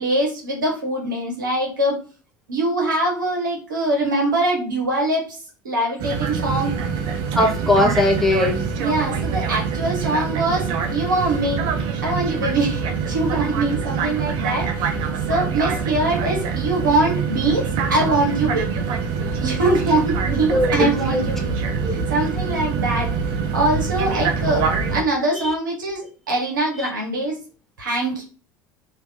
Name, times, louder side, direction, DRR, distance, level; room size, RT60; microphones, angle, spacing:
voice 1, 0.0-2.0 2.5-5.4 5.6-6.7 8.8-11.6 12.0-14.9 15.3-18.8 19.4-21.5 21.9-23.1 23.5-24.6 24.9-27.4 27.8-28.2, right 2 dB, 85° right, 0 dB, 1.0 m, -23 dB
sound 1, 6.0-25.0, right 6 dB, 55° right, 0.6 m, -24 dB
voice 2, 7.3-8.6 20.5-21.2 21.8-21.9 25.4-25.5, left 1 dB, ahead, 1 dB, 0.9 m, -19 dB
2.9 x 2.7 x 3.2 m, 0.37 s
figure-of-eight pair, 70°, 10 cm